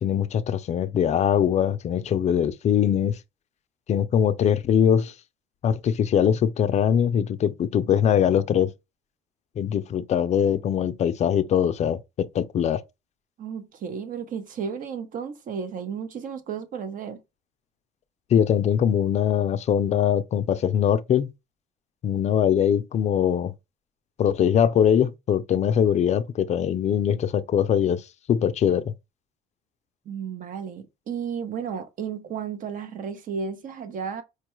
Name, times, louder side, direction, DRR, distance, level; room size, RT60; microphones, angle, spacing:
voice 1, 0.0-3.2 3.9-5.1 5.6-8.7 9.6-12.8 18.3-21.3 22.0-23.5 24.2-28.9, left 9 dB, 40° left, 0.4 m, -22 dB
voice 2, 13.4-17.2 30.1-34.2, right 6 dB, 55° right, 0.7 m, -33 dB
4.6 x 2.2 x 3.0 m
cardioid pair, 110°, 17 cm